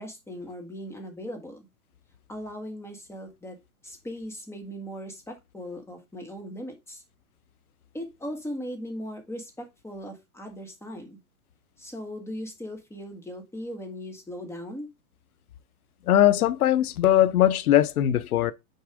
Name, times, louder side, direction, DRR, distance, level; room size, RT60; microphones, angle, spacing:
voice 1, 0.0-1.7 2.3-3.6 3.8-7.0 7.9-11.2 11.8-14.9, equal, 5° left, 1.6 m, -38 dB
voice 2, 16.1-18.5, left 12 dB, 80° left, 0.9 m, -20 dB
6.5 x 4.7 x 4.8 m
hypercardioid pair, 130°, 43 cm